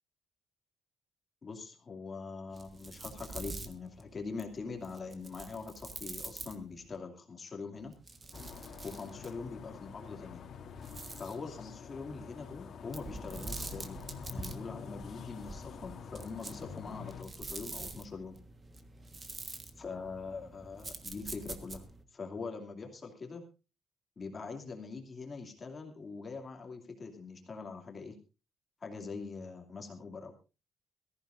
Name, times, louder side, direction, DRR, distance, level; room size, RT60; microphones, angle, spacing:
voice 1, 1.4-7.9 8.8-10.4 11.2-14.0 14.3-18.4 19.8-21.8 22.1-23.4 24.2-28.2 28.8-30.3, left 4 dB, 25° left, 2 dB, 2.6 m, -43 dB
sound 1, 2.5-7.0 7.8-9.5 10.6-11.4 12.9-22.0, right 3 dB, 25° right, 1.4 m, -46 dB
sound 2, 8.3-17.2, left 6 dB, 50° left, 2.6 m, -47 dB
22.0 x 14.5 x 2.6 m, 0.31 s
cardioid pair, 170°, 0 cm